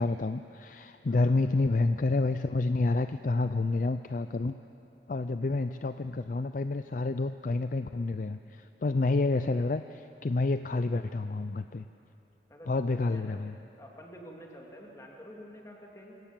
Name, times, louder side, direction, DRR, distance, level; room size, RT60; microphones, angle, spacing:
voice 1, 0.0-4.5 5.1-11.8 12.7-13.6, left 3 dB, 45° left, 10 dB, 0.4 m, -29 dB
voice 2, 1.1-1.4 12.5-13.4 13.8-16.2, equal, 15° left, -1 dB, 2.5 m, -49 dB
25.5 x 17.5 x 7.4 m, 2.9 s
head